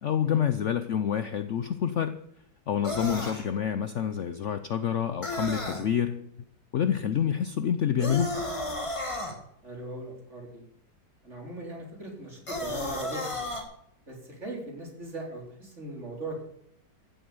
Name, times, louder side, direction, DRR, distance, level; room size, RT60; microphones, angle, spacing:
voice 1, 0.0-2.1 2.7-6.3 6.7-8.3, left 9 dB, 75° left, 11 dB, 0.6 m, -27 dB
sound 1, 2.8-3.5 5.2-5.8 8.0-9.3 12.5-13.6, left 1 dB, 15° left, 1.9 m, -33 dB
voice 2, 9.6-10.6 11.2-13.4 14.1-14.2 14.4-16.4, right 1 dB, 35° right, -1 dB, 4.2 m, -39 dB
14.5 x 8.0 x 8.0 m, 0.73 s
omnidirectional pair, 2.1 m